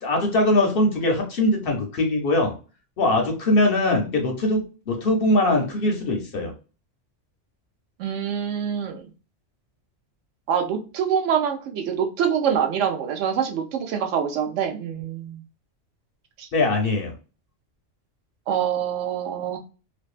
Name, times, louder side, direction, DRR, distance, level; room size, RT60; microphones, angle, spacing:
voice 1, 0.0-2.5 3.0-6.5 16.5-17.1, left 1 dB, 60° left, 2 dB, 0.7 m, -21 dB
voice 2, 8.0-9.1 10.5-15.4 16.4-16.5 18.5-19.6, right 8 dB, 80° right, 5 dB, 0.9 m, -25 dB
2.5 x 2.3 x 2.3 m, 0.35 s
omnidirectional pair, 1.3 m